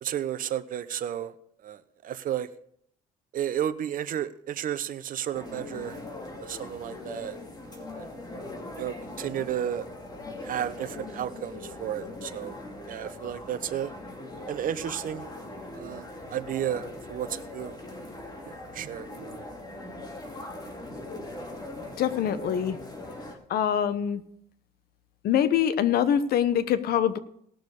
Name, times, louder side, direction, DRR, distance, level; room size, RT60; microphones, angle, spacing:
voice 1, 0.0-1.3 1.6-2.5 3.3-6.0 6.4-7.4 7.7-8.1 8.8-9.9 10.4-12.6 12.9-13.9 14.5-15.3 15.7-17.8 18.4-19.4, right 10 dB, 55° right, 12 dB, 0.9 m, -33 dB
sound 1, 5.3-23.4, left 2 dB, 25° left, 2.6 m, -41 dB
voice 2, 22.0-22.8 23.5-24.2 25.2-27.2, left 9 dB, 65° left, 13 dB, 1.0 m, -24 dB
18.5 x 6.5 x 4.9 m, 0.68 s
cardioid pair, 110°, 17 cm